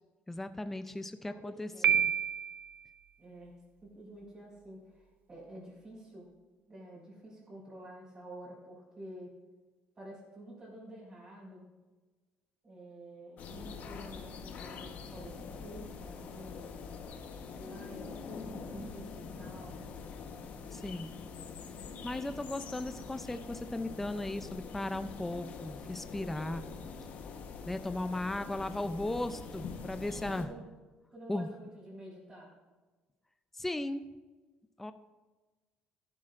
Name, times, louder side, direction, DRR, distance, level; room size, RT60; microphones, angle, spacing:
voice 1, 0.3-2.1 20.7-21.1 22.0-26.7 27.7-30.5 31.3-31.5 33.5-34.0 34.8-34.9, left 1 dB, 10° left, 10 dB, 0.4 m, -36 dB
voice 2, 1.3-1.9 3.2-3.5 3.8-6.2 6.7-9.3 9.9-11.7 12.6-16.6 17.5-19.8 30.4-30.6 31.1-32.5, right 1 dB, 30° right, -9 dB, 4.2 m, -49 dB
Piano, 1.8-2.8, right 9 dB, 55° right, 0.3 m, -28 dB
sound 1, 13.4-30.4, left 5 dB, 55° left, 1.1 m, -44 dB
15.0 x 11.5 x 2.5 m, 1.3 s
cardioid pair, 135°, 3 cm